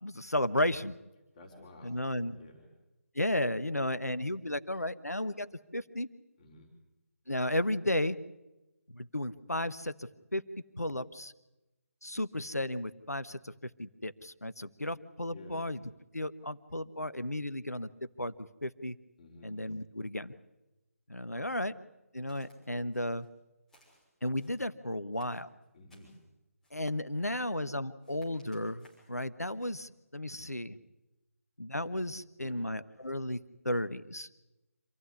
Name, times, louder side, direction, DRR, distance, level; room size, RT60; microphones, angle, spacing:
voice 1, 0.0-0.9 1.8-2.4 3.1-5.5 5.7-6.1 7.3-8.2 8.9-10.4 10.8-11.3 12.0-15.8 16.1-17.9 18.2-19.0 19.4-20.3 21.1-21.7 22.1-23.3 24.2-25.5 26.7-30.8 31.6-34.3, left 1 dB, 85° left, 14 dB, 1.2 m, -34 dB
voice 2, 1.3-2.0 2.4-2.7 6.4-6.7 15.3-15.6 19.2-19.5 21.3-21.6 25.7-26.1 32.4-32.6, left 2 dB, 25° left, -1 dB, 4.6 m, -53 dB
Walk footsteps, 22.3-22.6 22.9-23.3 23.7-24.7 25.1-26.2 26.6-26.9 27.3-27.7 28.0-29.2 29.6-29.8, left 1 dB, ahead, 6.2 m, -66 dB
26.5 x 15.0 x 9.8 m, 1.0 s
figure-of-eight pair, 150°, 8 cm